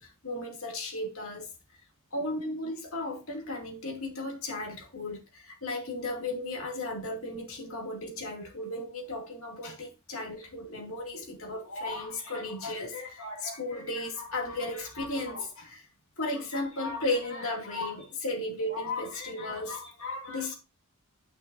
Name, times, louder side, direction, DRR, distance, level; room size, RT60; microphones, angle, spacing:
voice 1, 0.0-1.5 2.1-15.8 16.2-20.5, left 2 dB, 65° left, 2.5 m, -35 dB
9.5 x 5.9 x 2.7 m
head